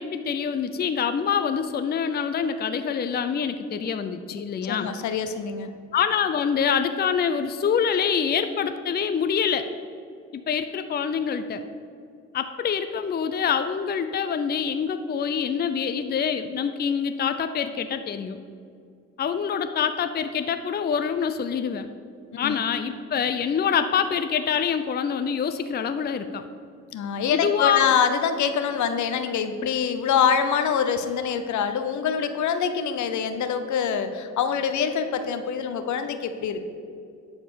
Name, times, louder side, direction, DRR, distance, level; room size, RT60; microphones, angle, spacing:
voice 1, 0.0-4.9 5.9-9.7 10.3-11.6 12.3-18.4 19.2-21.9 22.4-26.5 27.3-27.9, left 7 dB, 35° left, 9 dB, 0.5 m, -25 dB
voice 2, 4.6-5.7 22.4-22.5 26.9-36.6, left 7 dB, 70° left, 9 dB, 0.8 m, -25 dB
10.5 x 4.3 x 6.9 m, 2.3 s
cardioid pair, 90°, 30 cm